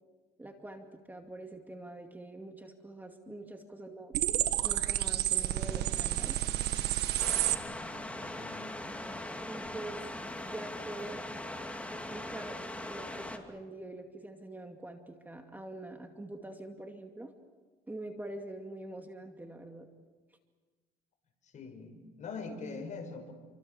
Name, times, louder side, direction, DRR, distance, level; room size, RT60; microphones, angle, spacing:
voice 1, 0.4-4.1 4.6-6.4 9.5-10.0 10.4-11.2 11.9-12.6 12.9-17.3 17.9-19.9, right 1 dB, 10° right, 4 dB, 2.4 m, -44 dB
sound 1, 4.1-7.6, right 13 dB, 80° right, 1.5 m, -30 dB
voice 2, 7.2-8.9 21.4-23.3, left 4 dB, 45° left, 5 dB, 6.3 m, -44 dB
sound 2, 7.2-13.4, left 1 dB, 10° left, 2.6 m, -40 dB
29.5 x 25.0 x 7.2 m, 1.4 s
cardioid pair, 110°, 17 cm